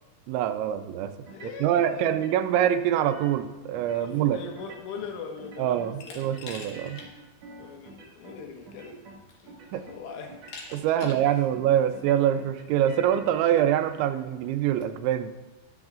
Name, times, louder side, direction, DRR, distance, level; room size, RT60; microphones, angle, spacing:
voice 1, 0.3-1.1 1.4-4.4 5.6-7.0 9.7-9.8 10.7-15.3, right 11 dB, 80° right, 9 dB, 2.9 m, -25 dB
voice 2, 1.3-2.1 4.0-6.3 7.6-9.0 9.4-10.4 11.0-11.2, left 5 dB, 90° left, 2 dB, 3.9 m, -40 dB
sound 1, 1.3-1.8 2.1-3.4 3.7-4.3 4.6-5.1 5.4-5.9 6.2-8.4 8.7-9.2 9.5-10.0 10.3-10.8 11.1-11.7 11.9-14.1, right 3 dB, 55° right, 1.9 m, -46 dB
Glass, 6.0-7.1 7.5-7.6 8.7-8.8 9.3-9.7 10.5-11.3, left 3 dB, 60° left, 2.9 m, -43 dB
21.0 x 7.1 x 2.5 m, 1.2 s
omnidirectional pair, 5.5 m